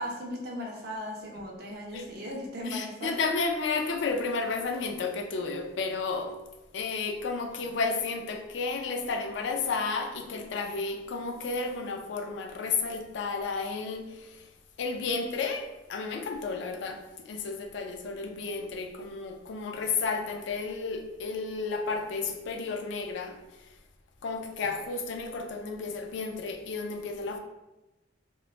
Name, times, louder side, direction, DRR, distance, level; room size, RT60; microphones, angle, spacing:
voice 1, 0.0-3.1, equal, 55° right, 0.6 m, -37 dB
voice 2, 2.6-6.3 6.7-14.5 14.8-23.4 24.2-27.4, left 4 dB, 70° left, 0.3 m, -32 dB
3.0 x 2.1 x 2.4 m
head